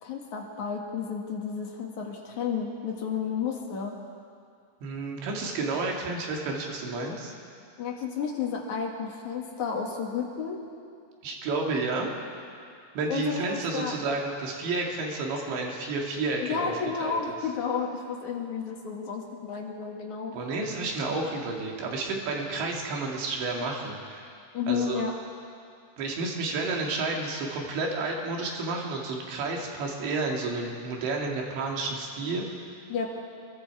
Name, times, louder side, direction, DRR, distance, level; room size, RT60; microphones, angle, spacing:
voice 1, 0.0-4.0 7.8-10.6 13.1-14.0 16.4-20.3 24.5-25.1 32.9-33.1, left 6 dB, 55° left, 0 dB, 2.4 m, -32 dB
voice 2, 4.8-7.3 11.2-12.1 13.0-16.7 17.0-17.4 20.3-24.3 24.7-25.0 26.0-32.4, right 3 dB, 70° right, 0 dB, 4.5 m, -31 dB
27.0 x 22.0 x 4.8 m, 2.4 s
omnidirectional pair, 5.5 m